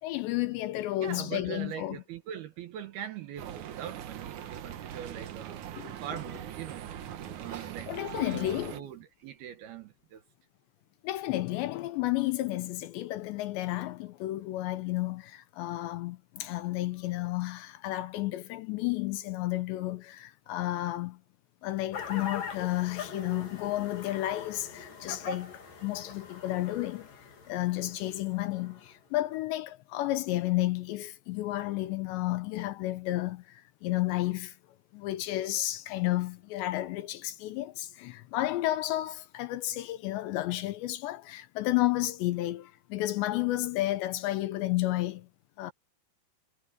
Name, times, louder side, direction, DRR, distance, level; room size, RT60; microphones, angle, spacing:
voice 1, 0.0-2.0 5.8-6.2 7.5-8.8 11.0-21.2 21.6-27.1 27.5-34.6 34.9-45.3 45.6-45.7, left 16 dB, 75° left, 2.8 m, -32 dB
voice 2, 1.0-5.7 6.0-6.9 7.4-10.2, right 10 dB, 70° right, 2.6 m, -42 dB
sound 1, 3.4-8.8, right 10 dB, 85° right, 1.7 m, -41 dB
sound 2, 21.9-28.9, left 5 dB, 50° left, 5.2 m, -42 dB
omnidirectional pair, 5.5 m